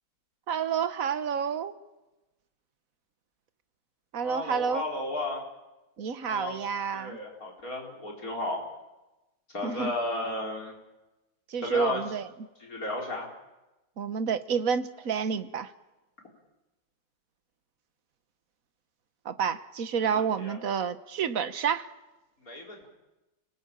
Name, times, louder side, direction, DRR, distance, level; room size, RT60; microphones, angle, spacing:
voice 1, 0.5-1.7 4.1-4.8 6.0-7.2 9.6-9.9 11.5-12.3 14.0-15.7 19.2-21.9, right 7 dB, 55° right, 12 dB, 1.5 m, -29 dB
voice 2, 4.2-5.4 6.3-6.6 6.9-8.6 9.5-10.7 11.6-12.0 12.6-13.3 20.0-20.6 22.5-22.9, left 2 dB, 50° left, 0 dB, 5.2 m, -33 dB
29.5 x 19.0 x 9.0 m, 1.0 s
omnidirectional pair, 1.9 m